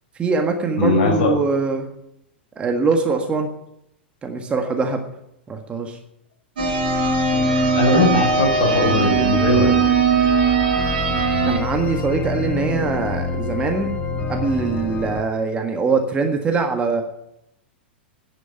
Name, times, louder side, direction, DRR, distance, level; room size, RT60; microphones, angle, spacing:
voice 1, 0.2-1.9 2.6-3.5 4.2-5.0 5.5-6.0 11.5-13.9 14.3-17.0, right 4 dB, 20° right, 4 dB, 1.6 m, -22 dB
voice 2, 0.8-1.3 7.7-9.7, left 3 dB, 50° left, 1 dB, 5.2 m, -19 dB
sound 1, 6.6-15.2, left 4 dB, 25° left, 1.5 m, -28 dB
sound 2, 6.6-11.6, right 5 dB, 60° right, 2.7 m, -19 dB
10.5 x 9.1 x 9.8 m, 0.80 s
figure-of-eight pair, 95°, 6 cm